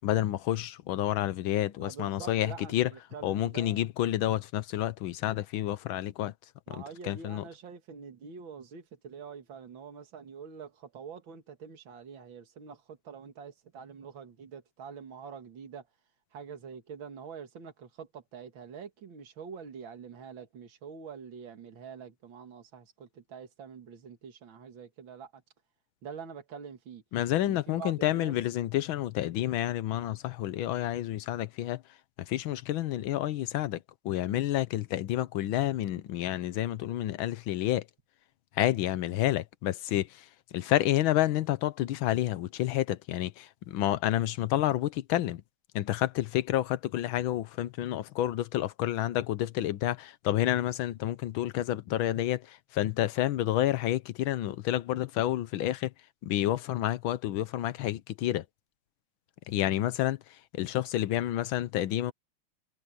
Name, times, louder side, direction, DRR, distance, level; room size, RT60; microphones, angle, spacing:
voice 1, 0.0-2.9 3.2-6.3 6.7-7.4 27.1-31.8 32.2-33.8 34.0-37.8 38.6-45.4 45.7-55.9 56.2-58.4 59.5-60.2 60.5-62.1, left 13 dB, 75° left, 1.6 m, -29 dB
voice 2, 1.8-3.9 6.7-15.9 16.3-25.4 26.0-27.0 27.4-28.3, right 6 dB, 65° right, 2.7 m, -45 dB
omnidirectional pair, 2.3 m